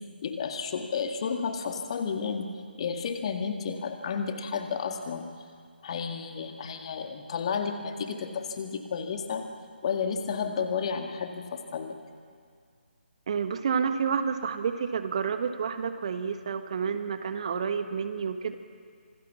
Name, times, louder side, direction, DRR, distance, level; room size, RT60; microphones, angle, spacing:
voice 1, 0.2-2.5 2.8-5.3 5.8-9.5 9.8-12.0, left 6 dB, 35° left, 6 dB, 1.8 m, -32 dB
voice 2, 13.3-18.5, right 6 dB, 35° right, 9 dB, 1.2 m, -29 dB
26.5 x 18.5 x 7.3 m, 2.1 s
figure-of-eight pair, 145°, 6 cm